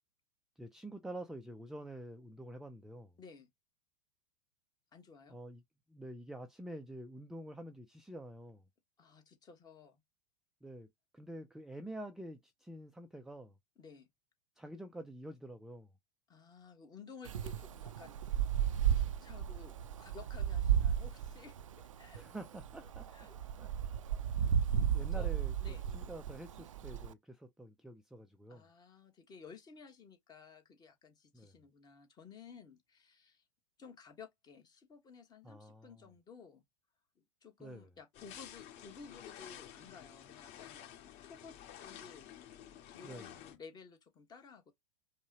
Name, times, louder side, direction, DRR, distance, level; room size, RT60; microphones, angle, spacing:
voice 1, 0.6-3.1 5.3-5.6 5.9-8.6 10.6-13.5 14.6-15.9 22.1-23.3 23.6-23.7 24.9-28.6 31.3-31.5 35.4-36.1 37.6-37.9 43.0-43.3, right 1 dB, 5° right, 0.4 m, -48 dB
voice 2, 3.2-3.5 4.9-5.4 9.0-10.0 13.8-14.1 16.3-18.2 18.9-22.3 23.1-23.4 25.2-25.3 25.6-25.9 28.5-33.4 33.8-36.6 37.2-40.9 41.2-42.3 42.9-44.7, left 5 dB, 25° left, 1.3 m, -55 dB
Wind, 17.3-27.1, right 9 dB, 70° right, 0.5 m, -34 dB
sound 1, 38.1-43.6, left 10 dB, 40° left, 2.0 m, -52 dB
5.3 x 2.2 x 2.8 m
figure-of-eight pair, 90°, 17 cm